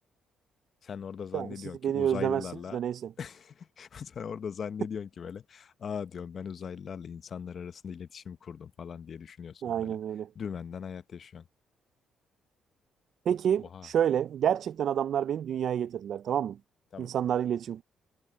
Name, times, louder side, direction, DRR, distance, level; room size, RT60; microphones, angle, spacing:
voice 1, 0.8-2.8 3.2-10.0 10.3-11.4 13.6-13.9 16.9-17.1, left 7 dB, 50° left, 0.8 m, -40 dB
voice 2, 1.8-2.4 2.7-3.1 9.6-10.3 13.3-16.6 17.0-17.8, right 9 dB, 65° right, 0.4 m, -28 dB
cardioid pair, 90°, 0 cm